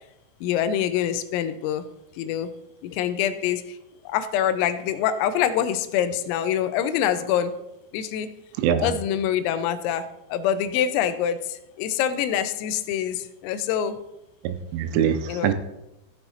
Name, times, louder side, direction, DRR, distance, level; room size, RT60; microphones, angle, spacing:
voice 1, 0.4-1.9 2.2-2.5 2.8-3.8 4.1-7.5 7.9-8.3 8.8-14.0 15.3-15.5, left 9 dB, 85° left, 11 dB, 3.4 m, -25 dB
voice 2, 8.6-8.9 14.4-15.5, right 8 dB, 80° right, 8 dB, 3.1 m, -23 dB
15.5 x 7.0 x 4.1 m, 0.89 s
omnidirectional pair, 5.9 m